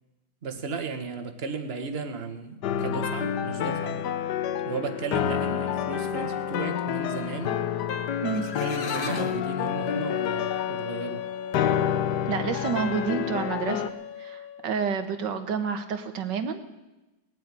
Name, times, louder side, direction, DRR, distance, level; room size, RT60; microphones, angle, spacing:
voice 1, 0.4-4.1 4.6-7.6 8.3-11.3, right 4 dB, 35° right, 7 dB, 1.4 m, -35 dB
sound 1, 2.6-13.9, left 9 dB, 65° left, 1.3 m, -29 dB
sound 2, 8.0-8.1 8.3-9.4, left 4 dB, 40° left, 1.2 m, -35 dB
Wind instrument woodwind instrument, 9.7-14.7, left 8 dB, 85° left, 1.4 m, -37 dB
voice 2, 12.3-13.9 14.2-16.6, right 6 dB, 70° right, 8 dB, 1.9 m, -29 dB
19.0 x 7.9 x 9.6 m, 1.0 s
omnidirectional pair, 2.1 m